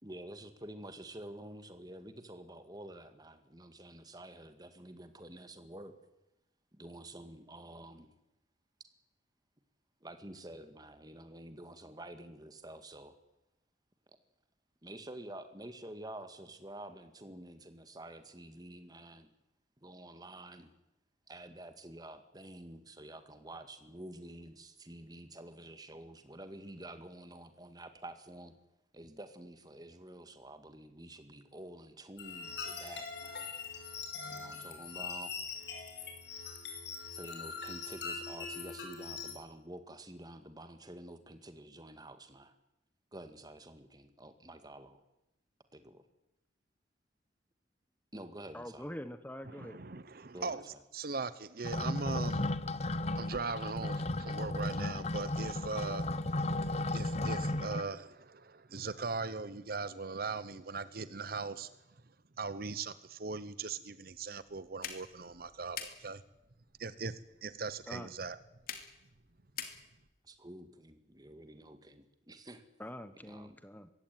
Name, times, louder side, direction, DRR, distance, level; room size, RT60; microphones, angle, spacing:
voice 1, 0.0-5.9 6.7-8.1 10.0-13.1 14.8-19.3 19.8-20.7 21.3-28.5 28.9-33.5 34.3-35.3 37.1-42.5 43.1-45.0 45.7-46.0 48.1-48.9 50.3-50.8 70.2-72.6 73.2-73.6, right 1 dB, 20° right, 9 dB, 2.0 m, -49 dB
sound 1, 32.2-39.3, left 5 dB, 75° left, 5.5 m, -42 dB
voice 2, 48.5-49.8 67.8-68.1 72.8-73.9, left 1 dB, 10° left, 11 dB, 1.0 m, -44 dB
voice 3, 49.5-50.6 50.9-52.5 53.2-61.7 62.4-66.2 66.8-68.4, right 4 dB, 55° right, 15 dB, 0.9 m, -40 dB
sound 2, 51.6-57.8, left 2 dB, 35° left, 0.9 m, -34 dB
sound 3, 64.1-70.2, left 8 dB, 55° left, 2.8 m, -48 dB
22.0 x 16.5 x 9.3 m, 0.91 s
head